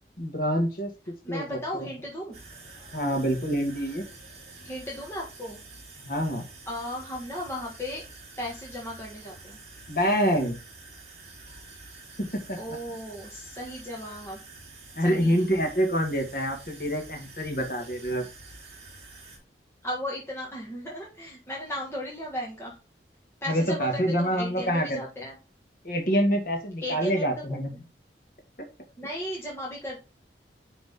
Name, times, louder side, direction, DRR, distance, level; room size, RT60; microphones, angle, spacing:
voice 1, 0.2-1.9 2.9-4.0 6.0-6.4 9.9-10.6 12.2-12.6 15.0-18.3 23.5-25.0 25.8-27.7, equal, 55° left, 3 dB, 2.1 m, -26 dB
voice 2, 1.2-2.4 4.6-5.6 6.7-8.0 8.4-9.6 12.6-14.4 15.0-15.5 19.8-22.8 23.4-25.4 26.8-27.6 29.0-30.0, equal, 15° left, -4 dB, 1.6 m, -36 dB
sound 1, 2.3-19.4, right 3 dB, 35° right, 3.6 m, -48 dB
9.5 x 3.9 x 3.7 m, 0.30 s
head